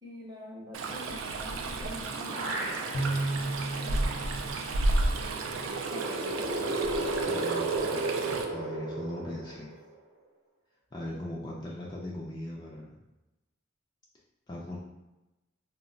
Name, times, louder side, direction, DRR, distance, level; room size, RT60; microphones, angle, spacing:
voice 1, 0.0-4.3 5.9-6.6, equal, 20° right, -4 dB, 0.6 m, -46 dB
Stream, 0.7-8.4, right 2 dB, 90° right, 0.3 m, -32 dB
sound 1, 1.9-3.3 3.7-3.8 5.1-9.9, right 2 dB, 65° right, 0.7 m, -33 dB
Bowed string instrument, 2.9-5.6, right 2 dB, 80° left, 0.5 m, -34 dB
voice 2, 7.3-8.1 8.5-9.7 10.9-12.9 14.5-14.8, left 1 dB, 20° left, -4 dB, 0.3 m, -39 dB
2.2 x 2.1 x 3.7 m, 1.0 s
head